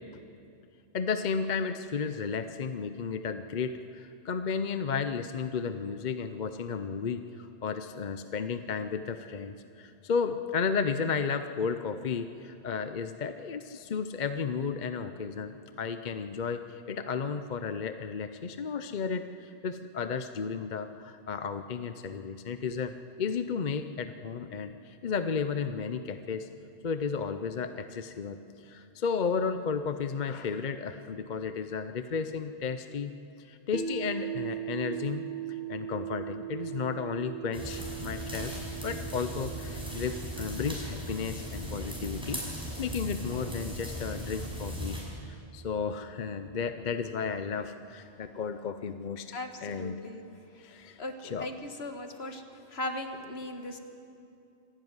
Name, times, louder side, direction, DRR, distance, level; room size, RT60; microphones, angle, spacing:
voice 1, 0.9-26.5 26.8-33.1 33.4-42.4 42.8-45.0 45.5-49.3 49.6-50.0 50.6-51.5, left 5 dB, 45° left, 9 dB, 0.8 m, -33 dB
sound 1, 33.7-45.8, right 11 dB, 70° right, 1.4 m, -41 dB
sound 2, 37.5-45.0, equal, 5° right, 6.2 m, -38 dB
voice 2, 49.3-50.2 51.0-52.4 52.7-53.8, left 1 dB, 65° left, 6 dB, 1.8 m, -38 dB
26.0 x 12.5 x 9.6 m, 2.6 s
omnidirectional pair, 1.2 m